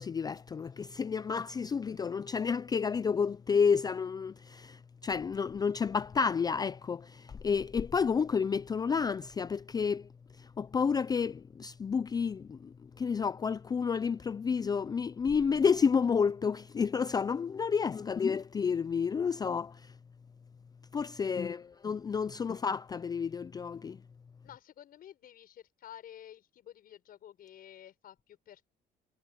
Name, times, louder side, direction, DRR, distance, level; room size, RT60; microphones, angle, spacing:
voice 1, 0.0-10.0 10.6-12.7 13.0-19.8 20.9-24.0, left 6 dB, 25° left, 0.4 m, -30 dB
voice 2, 21.2-21.8 24.4-28.7, left 11 dB, 60° left, 6.8 m, -52 dB
cardioid pair, 110°, 17 cm